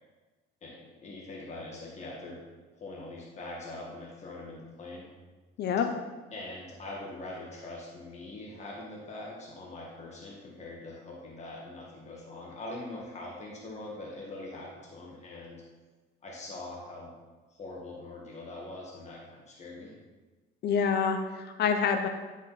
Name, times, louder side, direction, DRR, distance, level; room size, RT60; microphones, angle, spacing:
voice 1, 0.6-2.4 2.7-5.1 6.3-15.6 16.2-17.1 17.5-19.9, left 2 dB, 35° left, -3 dB, 1.6 m, -43 dB
voice 2, 5.6-5.9 20.6-22.1, left 6 dB, 50° left, 6 dB, 0.6 m, -27 dB
10.5 x 5.1 x 4.1 m, 1.3 s
cardioid pair, 145°, 21 cm